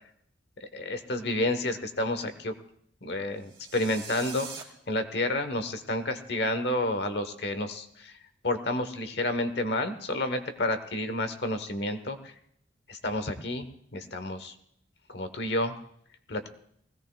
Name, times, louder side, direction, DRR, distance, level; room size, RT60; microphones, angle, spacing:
voice 1, 0.6-2.5 3.0-8.1 8.4-12.3 12.9-13.7 13.9-14.5 15.1-15.7 16.3-16.5, left 1 dB, 60° left, 9 dB, 1.1 m, -30 dB
sound 1, 3.4-4.6, right 6 dB, 25° right, 2.0 m, -42 dB
20.0 x 16.5 x 2.3 m, 0.69 s
head